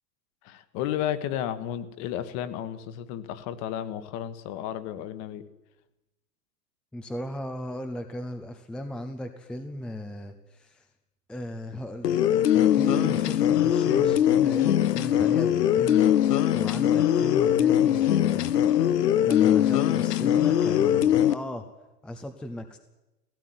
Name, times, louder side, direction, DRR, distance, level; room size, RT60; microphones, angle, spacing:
voice 1, 0.4-5.4, left 11 dB, 35° left, 13 dB, 1.6 m, -33 dB
voice 2, 6.9-10.9 11.3-12.2 12.7-18.6 19.2-21.7 22.0-22.8, left 1 dB, ahead, 7 dB, 0.7 m, -36 dB
sound 1, 12.0-21.3, left 11 dB, 80° left, 1.3 m, -21 dB
17.0 x 16.5 x 9.5 m, 1.0 s
hypercardioid pair, 140°, 47 cm